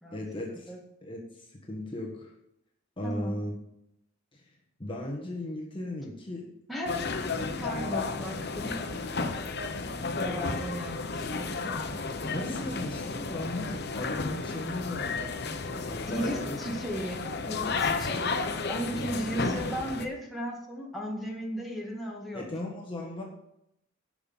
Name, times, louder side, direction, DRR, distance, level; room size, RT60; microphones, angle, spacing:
voice 1, 0.1-0.7 1.0-2.3 3.0-3.5 4.3-4.5 4.8-6.5 12.3-15.2 15.9-16.6 18.9-19.2 22.3-23.2, left 1 dB, 25° left, -1 dB, 1.5 m, -37 dB
voice 2, 3.0-3.3 6.7-7.0 7.6-9.0 10.2-12.0 16.1-18.4 18.7-22.5, equal, ahead, -1 dB, 1.8 m, -36 dB
sound 1, 6.9-20.1, left 4 dB, 55° left, 0.9 m, -33 dB
11.0 x 5.9 x 7.0 m, 0.80 s
head